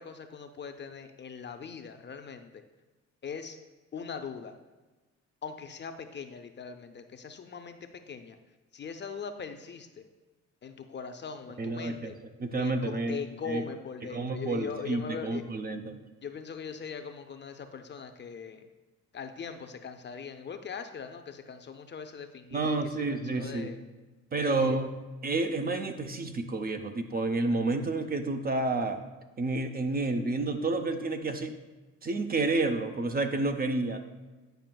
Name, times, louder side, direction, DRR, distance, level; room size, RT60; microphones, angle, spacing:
voice 1, 0.0-2.6 3.2-3.6 3.9-4.6 5.4-7.8 8.1-8.4 8.7-10.0 10.6-12.1 12.6-15.4 16.2-18.7 19.1-22.8 23.1-23.8 24.4-24.8, left 6 dB, 35° left, 7 dB, 0.5 m, -40 dB
voice 2, 11.6-12.1 12.4-13.2 13.5-13.6 14.1-16.0 22.5-23.7 24.3-24.9 25.2-29.0 29.4-31.6 32.0-34.0, right 3 dB, 30° right, 6 dB, 0.5 m, -30 dB
9.1 x 5.1 x 2.2 m, 1.2 s
cardioid pair, 90°, 30 cm